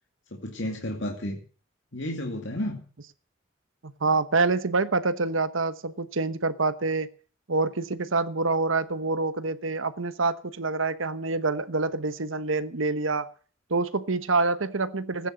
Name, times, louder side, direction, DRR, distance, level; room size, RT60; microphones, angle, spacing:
voice 1, 0.3-1.4 1.9-2.8, left 1 dB, 60° left, 2.4 m, -32 dB
voice 2, 3.8-7.1 7.5-13.3 13.7-15.3, right 3 dB, 75° right, 1.1 m, -26 dB
16.0 x 9.9 x 7.6 m
head